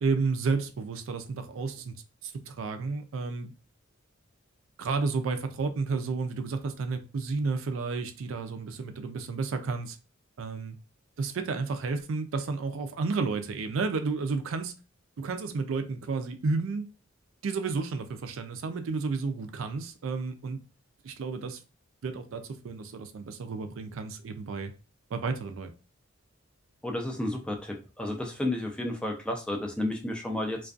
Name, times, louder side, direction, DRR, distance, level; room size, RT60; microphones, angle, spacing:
voice 1, 0.0-1.9 2.2-3.5 4.8-10.0 10.4-10.8 11.2-14.7 15.2-16.9 17.4-20.6 21.0-21.6 22.0-24.7 25.1-25.7, right 4 dB, 75° right, 0.4 m, -31 dB
voice 2, 26.8-30.6, left 1 dB, 5° left, 0.4 m, -32 dB
2.5 x 2.3 x 2.3 m
head